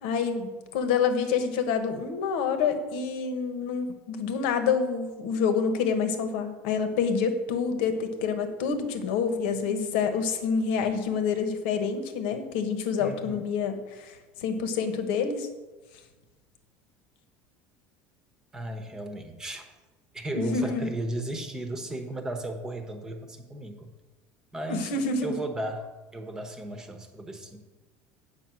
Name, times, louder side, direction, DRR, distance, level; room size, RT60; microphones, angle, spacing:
voice 1, 0.0-15.5 20.3-20.9 24.7-25.3, left 6 dB, 80° left, 8 dB, 1.4 m, -27 dB
voice 2, 13.0-13.4 18.5-19.7 20.1-23.9 24.5-25.9 26.1-27.6, right 1 dB, 10° right, 6 dB, 1.0 m, -35 dB
8.8 x 5.8 x 7.6 m, 1.2 s
cardioid pair, 165°, 5 cm